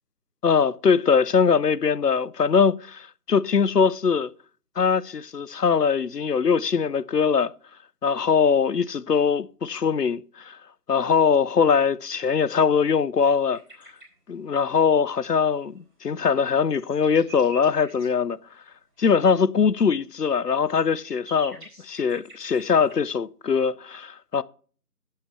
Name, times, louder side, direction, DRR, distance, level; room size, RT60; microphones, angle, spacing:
voice 1, 0.4-4.3 4.8-7.5 8.0-10.6 10.9-13.6 14.3-18.4 19.0-24.4, left 6 dB, 75° left, 0.7 m, -22 dB
sound 1, 13.5-14.1 15.8-15.9 16.1-18.1 19.0-19.1 20.1-23.0, right 1 dB, 30° right, 4.3 m, -47 dB
8.6 x 7.9 x 6.0 m
figure-of-eight pair, 180°, 48 cm